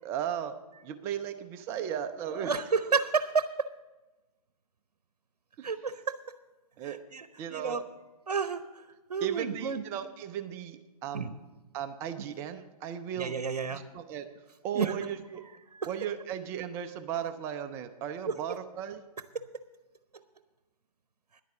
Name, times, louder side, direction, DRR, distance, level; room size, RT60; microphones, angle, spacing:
voice 1, 0.0-0.5 0.8-2.5 5.6-5.7 6.8-7.0 7.4-7.8 9.2-11.4 11.7-13.3 13.7-14.3 14.6-15.4 15.9-19.0, right 9 dB, 15° right, 9 dB, 0.3 m, -36 dB
voice 2, 2.4-3.5 5.6-6.2 6.8-7.8 8.3-8.8 9.1-9.8 11.1-11.3 13.2-13.8 14.7-15.0 15.7-15.9 18.3-18.4 19.3-19.4, right 5 dB, 80° right, 11 dB, 0.7 m, -30 dB
10.5 x 9.3 x 6.6 m, 1.1 s
hypercardioid pair, 135°, 20 cm